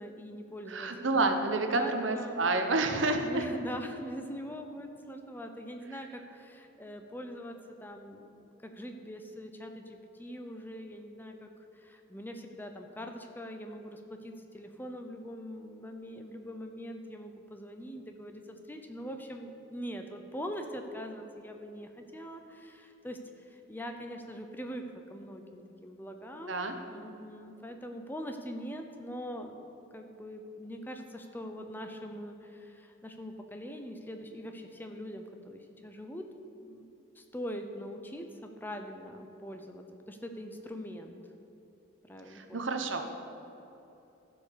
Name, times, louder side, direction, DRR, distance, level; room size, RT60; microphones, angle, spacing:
voice 1, 0.0-2.5 3.2-24.8 25.1-36.3 36.6-41.1 42.0-42.7, equal, 10° left, 4 dB, 0.6 m, -43 dB
voice 2, 0.7-3.4 26.5-26.7 42.3-43.1, right 2 dB, 75° right, 6 dB, 1.0 m, -29 dB
14.5 x 5.3 x 6.7 m, 3.0 s
head